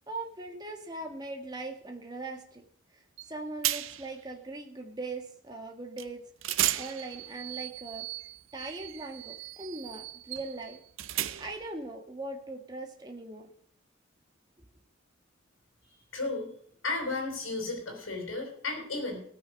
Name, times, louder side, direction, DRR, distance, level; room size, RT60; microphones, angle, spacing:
voice 1, 0.1-2.6 2.9-6.2 6.7-8.1 8.5-10.8 11.4-13.5, right 2 dB, 20° right, 2 dB, 1.6 m, -40 dB
sound 1, 3.2-3.3 3.6-4.2 6.0-6.1 6.4-11.7, right 13 dB, 75° right, 0.6 m, -35 dB
voice 2, 16.1-16.5 16.8-19.2, left 3 dB, 75° left, 1 dB, 4.7 m, -33 dB
18.0 x 6.2 x 6.3 m, 0.62 s
head